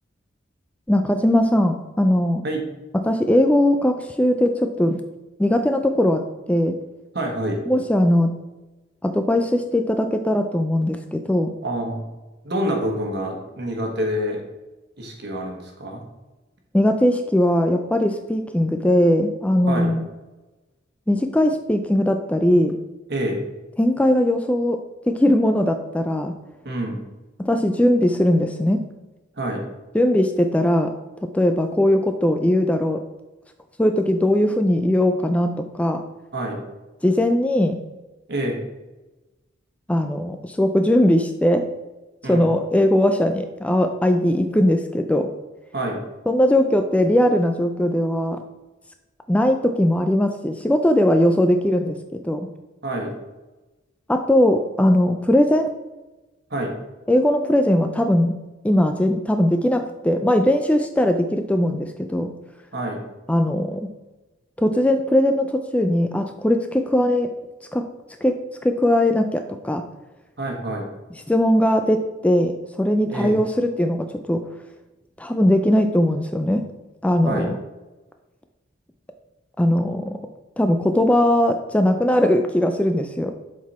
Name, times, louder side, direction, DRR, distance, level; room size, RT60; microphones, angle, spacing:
voice 1, 0.9-2.4 2.9-5.0 5.4-6.2 6.5-6.8 7.6-8.4 9.0-11.5 16.7-20.1 21.1-22.7 23.8-24.8 25.1-26.3 27.4-28.8 29.9-30.9 31.3-33.0 33.8-36.0 37.0-37.8 39.9-41.6 42.3-45.3 46.3-48.4 49.3-52.5 54.1-55.7 57.1-58.4 58.6-62.3 63.3-63.9 64.6-67.3 67.7-67.9 68.2-68.4 68.6-69.8 71.3-72.5 72.8-74.4 75.2-76.6 77.0-77.5 79.6-80.1 80.6-83.3, left 1 dB, 5° left, 6 dB, 0.3 m, -19 dB
voice 2, 7.1-7.6 11.6-12.0 12.4-14.4 15.0-16.0 19.7-19.9 23.1-23.5 26.6-27.0 29.4-29.6 36.3-36.6 38.3-38.6 42.2-42.5 45.7-46.0 52.8-53.1 56.5-56.7 62.7-63.0 70.4-70.8 73.1-73.4 77.3-77.5, right 1 dB, 60° right, 1 dB, 1.4 m, -27 dB
7.3 x 4.1 x 4.2 m, 1.1 s
head